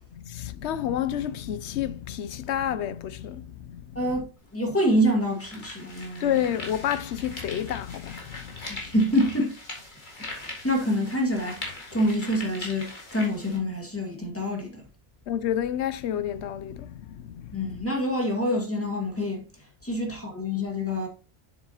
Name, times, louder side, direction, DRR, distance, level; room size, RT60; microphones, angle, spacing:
voice 1, 0.1-4.2 6.2-8.9 15.3-17.9 20.1-20.2, left 10 dB, 75° left, 0.9 m, -30 dB
voice 2, 4.0-6.4 8.7-9.6 10.2-14.8 17.5-19.4 19.8-21.1, equal, 10° left, 1.9 m, -26 dB
sound 1, 4.4-4.5 5.1-13.6, left 2 dB, 45° left, 2.2 m, -41 dB
7.3 x 7.2 x 2.9 m
omnidirectional pair, 1.2 m